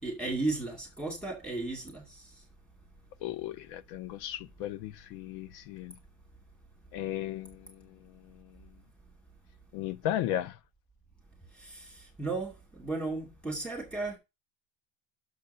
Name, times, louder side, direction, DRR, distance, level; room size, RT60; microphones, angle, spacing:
voice 1, 0.0-2.1 11.6-11.9 12.2-14.2, right 3 dB, 5° left, 2.5 m, -34 dB
voice 2, 3.2-5.9 6.9-7.6 9.7-10.5, left 12 dB, 80° left, 0.7 m, -35 dB
7.6 x 7.0 x 5.6 m
cardioid pair, 175°, 30 cm